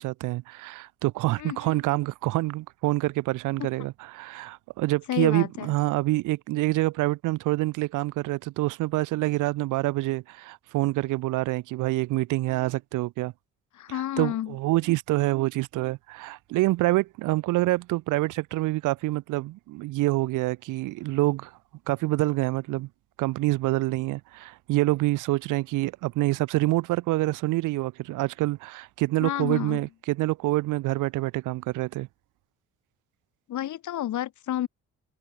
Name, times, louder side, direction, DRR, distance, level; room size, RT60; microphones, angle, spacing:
voice 1, 0.0-13.3 13.9-21.5 21.9-22.9 23.2-32.1, right 19 dB, 85° right, 0.6 m, -26 dB
voice 2, 1.4-1.8 5.1-5.7 13.7-14.5 29.2-29.8 33.5-34.7, left 12 dB, 75° left, 2.7 m, -30 dB
cardioid pair, 90°, 30 cm